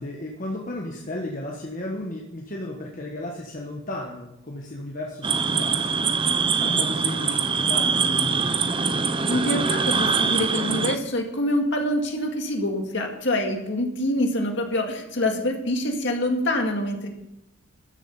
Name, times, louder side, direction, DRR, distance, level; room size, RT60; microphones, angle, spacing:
voice 1, 0.0-6.0 6.5-8.5, left 1 dB, 40° left, -1 dB, 1.3 m, -34 dB
sound 1, 5.2-11.0, right 5 dB, 25° right, 0.6 m, -23 dB
voice 2, 9.3-17.1, left 1 dB, 55° left, 3 dB, 2.1 m, -25 dB
13.0 x 7.3 x 7.1 m, 0.83 s
head